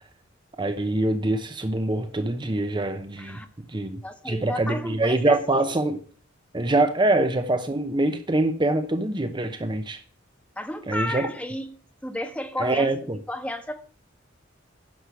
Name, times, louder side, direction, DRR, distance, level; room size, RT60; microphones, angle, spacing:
voice 1, 0.6-3.4 3.7-4.0 4.3-6.0 6.5-10.0 10.9-11.3 12.6-13.2, right 2 dB, 25° right, 0.8 m, -24 dB
voice 2, 4.0-5.4 10.6-12.9 13.3-13.8, left 1 dB, 5° left, 1.4 m, -32 dB
10.5 x 6.5 x 8.3 m
head